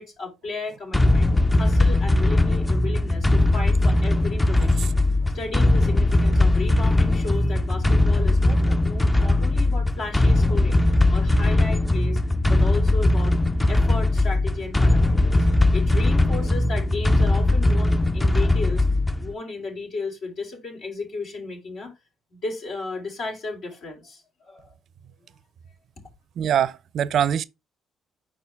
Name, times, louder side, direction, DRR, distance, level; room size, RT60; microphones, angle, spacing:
voice 1, 0.0-4.9 5.3-10.8 11.1-12.2 12.5-13.4 13.7-15.5 15.7-18.8 19.2-21.9 22.3-24.7, left 3 dB, 70° left, 4.7 m, -34 dB
sound 1, 0.9-19.3, left 2 dB, 15° left, 0.6 m, -20 dB
voice 2, 26.4-27.4, right 9 dB, 65° right, 0.5 m, -23 dB
6.2 x 4.8 x 5.6 m
supercardioid pair, 65°, 0 cm